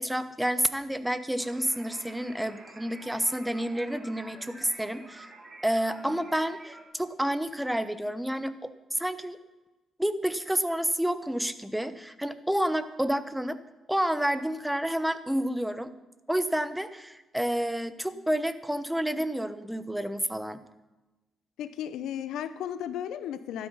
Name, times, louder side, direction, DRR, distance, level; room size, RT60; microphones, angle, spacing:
voice 1, 0.0-5.3 5.6-9.4 10.0-13.6 13.9-15.9 16.3-20.6, equal, 5° right, 12 dB, 1.0 m, -29 dB
sound 1, 1.4-6.8, right 2 dB, 25° right, 3.1 m, -49 dB
voice 2, 21.6-23.7, left 10 dB, 85° left, 13 dB, 0.9 m, -35 dB
13.5 x 12.0 x 5.6 m, 1.1 s
cardioid pair, 90°, 0 cm